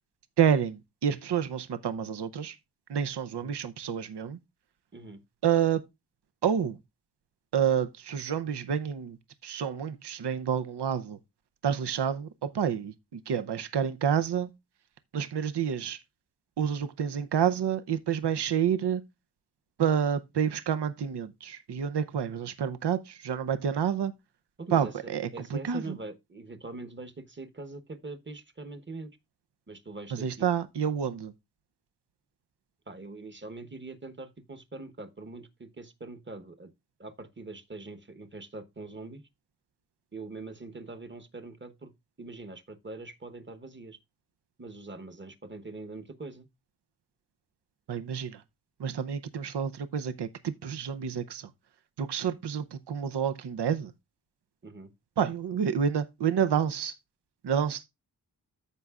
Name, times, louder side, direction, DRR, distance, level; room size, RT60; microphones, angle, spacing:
voice 1, 0.4-2.6 2.9-4.4 5.4-5.8 6.4-6.8 7.5-9.2 9.4-11.2 11.6-14.5 15.1-16.0 16.6-19.0 19.8-24.1 24.7-26.0 30.1-31.3 47.9-48.4 48.8-51.5 52.0-53.9 55.2-57.0 57.4-57.8, right 8 dB, 85° right, 0.7 m, -29 dB
voice 2, 24.6-29.1 29.7-30.5 32.9-36.7 37.0-39.2 40.1-41.9 42.2-44.0 44.6-46.5 54.6-54.9, right 3 dB, 30° right, 1.1 m, -43 dB
14.0 x 5.4 x 2.4 m
wide cardioid pair, 90°, 39 cm